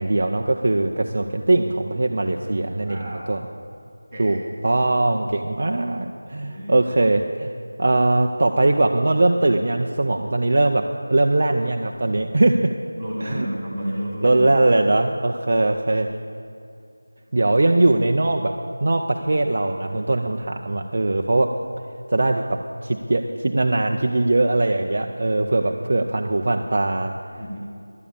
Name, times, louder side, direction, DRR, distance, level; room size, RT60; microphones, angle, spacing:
voice 1, 0.0-3.4 4.2-7.5 7.8-10.8 11.1-12.7 13.2-13.5 14.2-16.1 17.3-18.5 18.8-21.5 22.1-27.1, right 2 dB, 30° right, 3 dB, 0.5 m, -21 dB
voice 2, 2.8-3.3 4.1-4.4 6.4-6.8 13.0-14.7 15.9-16.1 19.8-20.1 25.0-25.7 27.3-27.6, equal, 5° left, -13 dB, 2.2 m, -33 dB
11.5 x 8.8 x 8.6 m, 2.5 s
figure-of-eight pair, 180°, 0 cm